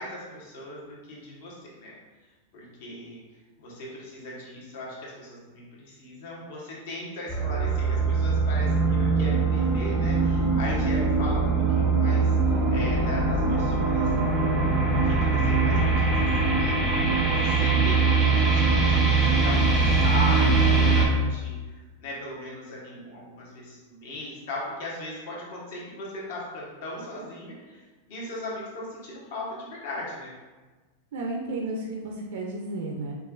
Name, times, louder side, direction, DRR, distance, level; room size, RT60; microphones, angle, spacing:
voice 1, 0.0-1.9 2.5-3.2 3.6-16.3 16.6-27.8 28.1-30.3, left 1 dB, 50° left, -5 dB, 1.1 m, -38 dB
sound 1, 7.3-21.1, right 3 dB, 5° right, 0.5 m, -22 dB
voice 2, 31.1-33.2, right 2 dB, 60° right, 0 dB, 0.4 m, -32 dB
5.2 x 2.3 x 2.4 m, 1.3 s
supercardioid pair, 180°, 0 cm